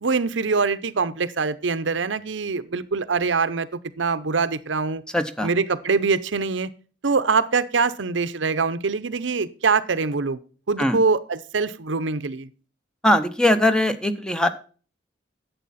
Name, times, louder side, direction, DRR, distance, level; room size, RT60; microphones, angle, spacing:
voice 1, 0.0-5.0 5.4-6.7 7.0-10.4 10.7-12.5, right 4 dB, 85° right, 13 dB, 0.8 m, -24 dB
voice 2, 5.1-5.5 10.8-11.0 13.0-14.5, left 1 dB, 5° left, 10 dB, 0.8 m, -20 dB
11.5 x 8.2 x 4.2 m, 0.39 s
head